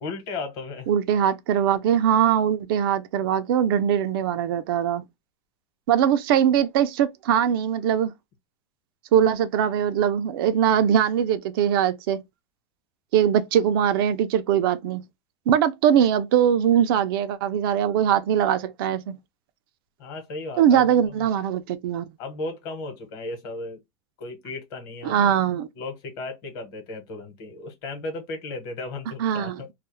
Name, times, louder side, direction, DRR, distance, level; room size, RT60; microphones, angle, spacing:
voice 1, 0.0-0.9 20.0-21.2 22.2-23.8 24.2-25.4 25.7-29.7, left 3 dB, 50° left, 1.0 m, -35 dB
voice 2, 0.9-5.0 5.9-8.1 9.1-12.2 13.1-15.0 15.5-19.2 20.6-22.1 25.0-25.7 29.2-29.7, right 9 dB, 65° right, 0.4 m, -21 dB
2.3 x 2.0 x 2.9 m
supercardioid pair, 160°, 13 cm